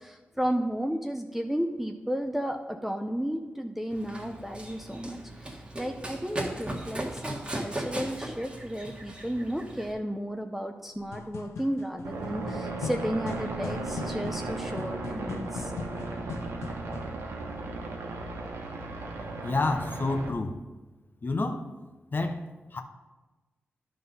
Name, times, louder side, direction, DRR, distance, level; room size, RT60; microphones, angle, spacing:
voice 1, 0.0-15.7, equal, 5° right, 4 dB, 0.6 m, -33 dB
Run, 3.9-9.9, right 1 dB, 25° right, 1.6 m, -37 dB
sound 1, 11.0-17.2, left 5 dB, 90° left, 0.5 m, -40 dB
sound 2, 12.0-20.3, right 3 dB, 90° right, 1.0 m, -36 dB
voice 2, 19.4-20.6 21.2-21.6 22.1-22.4 22.7-22.8, left 3 dB, 50° left, 5 dB, 0.8 m, -28 dB
11.0 x 3.9 x 5.4 m, 1.2 s
cardioid pair, 50°, 5 cm